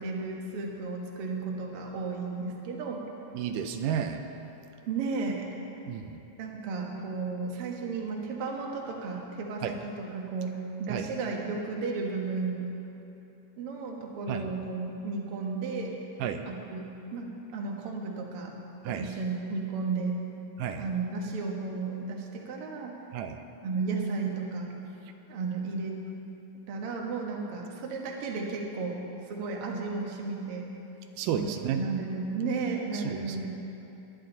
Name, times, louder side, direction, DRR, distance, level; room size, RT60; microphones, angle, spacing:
voice 1, 0.0-3.0 4.9-5.5 6.4-12.7 13.6-16.0 16.5-16.9 17.1-18.5 18.8-20.2 20.8-23.0 23.6-24.7 25.3-26.0 26.7-29.0 29.3-30.7 31.3-33.5, right 4 dB, 55° right, 0 dB, 2.0 m, -33 dB
voice 2, 3.3-4.2 5.9-6.2 9.6-9.7 10.9-11.1 14.3-14.4 16.2-16.4 18.9-19.1 20.6-20.8 23.1-23.4 31.2-31.8 32.9-33.5, right 9 dB, 85° right, 6 dB, 2.2 m, -32 dB
21.5 x 11.0 x 4.0 m, 2.9 s
omnidirectional pair, 3.7 m